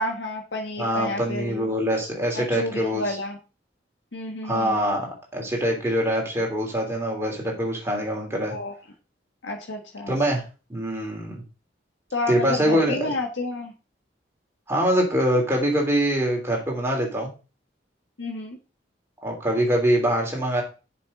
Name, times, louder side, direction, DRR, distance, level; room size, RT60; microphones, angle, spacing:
voice 1, 0.0-1.7 2.3-3.4 4.1-4.8 8.5-8.8 9.4-10.2 12.1-13.7 18.2-18.6, left 2 dB, 85° left, 1 dB, 1.5 m, -30 dB
voice 2, 0.8-3.2 4.4-8.5 10.1-10.4 10.7-11.4 12.3-13.1 14.7-17.3 19.2-20.6, equal, 15° right, -1 dB, 3.2 m, -24 dB
7.1 x 5.5 x 6.6 m, 0.33 s
head